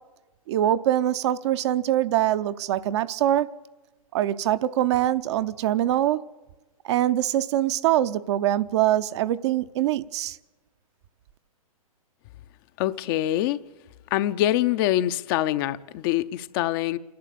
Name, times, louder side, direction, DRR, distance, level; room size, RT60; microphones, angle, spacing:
voice 1, 0.5-3.5 4.1-6.2 6.8-10.4, right 12 dB, 50° right, 0.7 m, -23 dB
voice 2, 12.8-13.6 14.1-17.0, left 13 dB, 40° left, 0.6 m, -24 dB
28.0 x 11.5 x 8.4 m
hypercardioid pair, 130°, 19 cm